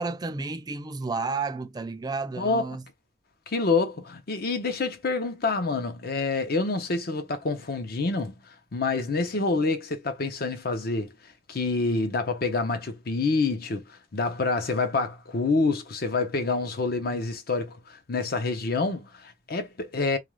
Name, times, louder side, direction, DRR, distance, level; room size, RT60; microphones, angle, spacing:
voice 1, 0.0-2.8 17.0-17.2, right 3 dB, 20° right, 0.4 m, -32 dB
voice 2, 2.4-2.7 3.5-8.3 8.7-11.1 11.5-13.8 14.1-20.2, left 3 dB, 60° left, 0.7 m, -27 dB
2.4 x 2.3 x 3.1 m
head